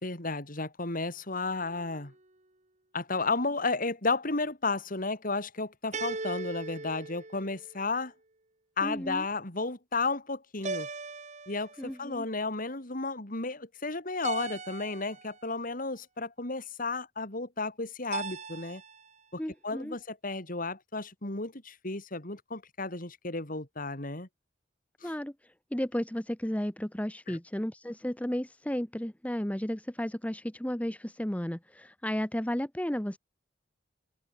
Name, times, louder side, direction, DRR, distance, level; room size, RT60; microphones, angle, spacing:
voice 1, 0.0-2.1 2.9-8.1 8.8-10.9 11.5-18.8 19.3-24.3 25.0-25.1 27.3-27.4, left 3 dB, 50° left, 3.7 m, -33 dB
sound 1, 1.5-2.2 5.9-7.9 10.6-12.0 14.2-15.4 18.1-19.1, right 3 dB, 40° right, 3.5 m, -39 dB
voice 2, 8.8-9.2 11.8-12.3 19.4-20.0 25.0-25.3 25.7-33.2, equal, 10° left, 0.9 m, -33 dB
head